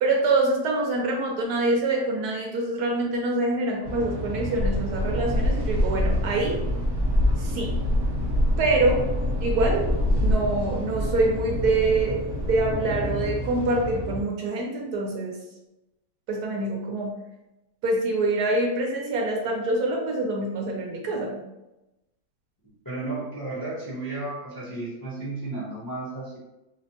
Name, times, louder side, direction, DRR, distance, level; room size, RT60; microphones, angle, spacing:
voice 1, 0.0-6.6 7.4-7.7 8.6-9.0 9.4-9.8 10.2-12.2 12.4-15.4 16.3-17.1 17.8-21.4, right 2 dB, 70° right, 0 dB, 1.2 m, -25 dB
sound 1, 3.8-14.2, equal, 45° right, 1.1 m, -32 dB
sound 2, 4.6-12.7, left 1 dB, 70° left, 1.2 m, -26 dB
voice 2, 22.8-26.4, right 2 dB, 20° left, -7 dB, 0.7 m, -33 dB
4.9 x 2.1 x 2.8 m, 0.96 s
omnidirectional pair, 1.8 m